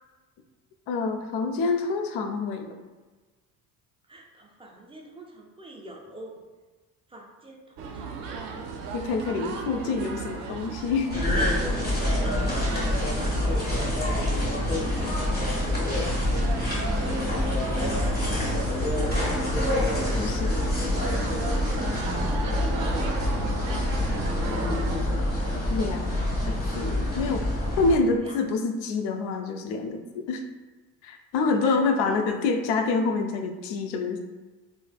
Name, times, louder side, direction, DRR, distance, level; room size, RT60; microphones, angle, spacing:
voice 1, 0.9-2.8 8.9-11.4 20.2-20.6 25.5-26.1 26.5-27.5 27.8-30.4 31.0-34.2, left 4 dB, 60° left, 6 dB, 0.5 m, -27 dB
voice 2, 4.1-6.3 7.1-10.3 11.9-14.3 14.6-15.2 17.1-18.8 20.5-21.1 22.0-23.2 23.6-25.0 28.2-28.4 31.6-31.8 32.1-32.2, right 1 dB, 15° right, -1 dB, 0.4 m, -45 dB
sound 1, 7.8-25.0, right 5 dB, 70° right, 0.5 m, -36 dB
sound 2, 11.1-28.0, left 1 dB, 20° left, 1.2 m, -26 dB
3.1 x 2.1 x 2.3 m, 1.3 s
hypercardioid pair, 65°, 47 cm